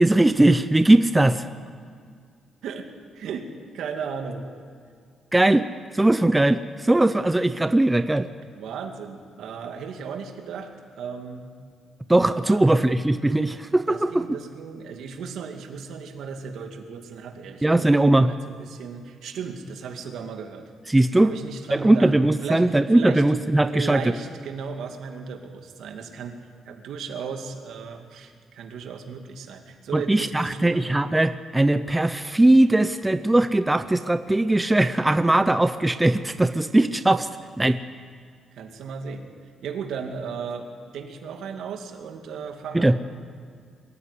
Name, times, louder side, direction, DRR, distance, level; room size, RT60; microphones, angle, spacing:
voice 1, 0.0-1.5 5.3-5.7 5.9-8.3 12.1-14.3 17.6-18.3 20.9-21.3 21.7-24.1 29.9-37.3 37.6-37.8 42.7-43.0, right 1 dB, 10° right, 11 dB, 0.5 m, -19 dB
voice 2, 3.1-3.5 3.7-4.5 8.5-10.7 11.0-11.5 12.4-12.6 13.9-18.0 18.3-20.7 21.2-22.1 22.4-23.2 23.7-26.4 26.7-30.8 38.5-39.3 39.6-42.9, right 6 dB, 70° right, 4 dB, 2.4 m, -35 dB
23.0 x 14.5 x 9.8 m, 2.1 s
cardioid pair, 155°, 0 cm